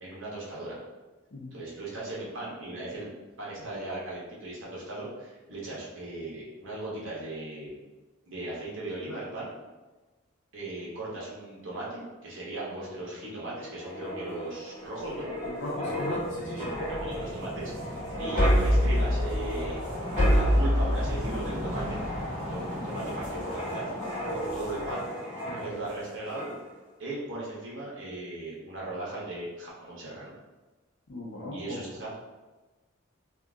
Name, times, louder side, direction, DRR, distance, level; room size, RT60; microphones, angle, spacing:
voice 1, 0.0-0.8 1.5-3.1 3.4-7.8 8.3-9.5 10.5-15.3 16.5-19.9 20.3-22.0 22.3-23.9 24.3-26.5 27.0-30.3 31.5-32.1, right 2 dB, 65° right, -6 dB, 1.0 m, -38 dB
sound 1, 13.7-26.0 26.3-26.6, equal, 35° right, 1.4 m, -29 dB
voice 2, 15.4-16.7 25.5-25.7 31.1-31.8, left 2 dB, 60° left, -8 dB, 0.6 m, -38 dB
sound 2, 16.7-24.9, equal, ahead, 1.1 m, -41 dB
2.8 x 2.4 x 3.5 m, 1.2 s
head